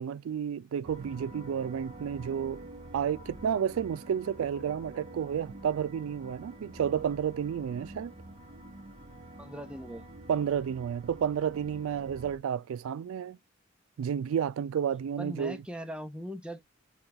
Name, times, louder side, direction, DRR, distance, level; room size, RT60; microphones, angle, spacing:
voice 1, 0.0-2.6 2.9-8.1 10.3-13.4 14.0-15.6, right 8 dB, 85° right, 0.3 m, -31 dB
sound 1, 0.8-12.4, right 1 dB, 35° right, 0.9 m, -47 dB
voice 2, 9.4-10.0 15.2-16.6, equal, 5° right, 0.5 m, -40 dB
5.7 x 2.3 x 2.6 m
head